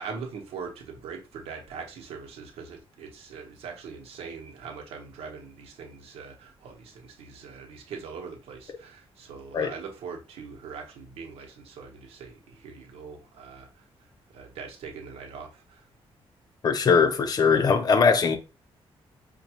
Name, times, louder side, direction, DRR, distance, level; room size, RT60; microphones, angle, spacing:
voice 1, 0.0-13.8 14.3-15.8, right 5 dB, 90° right, 1.0 m, -41 dB
voice 2, 16.6-18.4, left 5 dB, 40° left, 0.6 m, -21 dB
5.1 x 2.3 x 2.8 m
cardioid pair, 145°, 10 cm